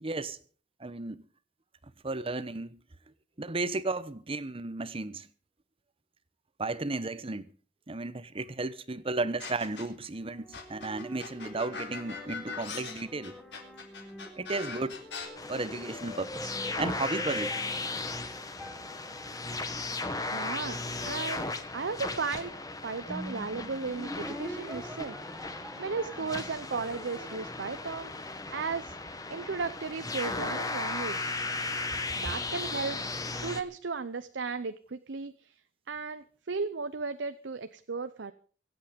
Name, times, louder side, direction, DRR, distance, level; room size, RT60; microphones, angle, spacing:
voice 1, 0.0-0.4 0.8-1.2 2.0-2.8 3.4-5.3 6.6-7.4 7.9-13.4 14.4-15.0 15.5-17.5, right 3 dB, 30° right, 0.9 m, -34 dB
sound 1, 9.4-10.1 10.5-15.3, left 5 dB, 70° left, 4.0 m, -40 dB
sound 2, 10.2-28.7, equal, ahead, 2.1 m, -45 dB
sound 3, 15.4-33.6, left 3 dB, 20° left, 1.4 m, -36 dB
voice 2, 20.3-20.8 21.0-22.6 22.8-25.2 25.8-28.1 28.5-29.0 29.3-31.3 32.2-33.0 33.3-35.5 35.9-38.3, right 4 dB, 75° right, 0.7 m, -35 dB
25.0 x 8.3 x 5.2 m
head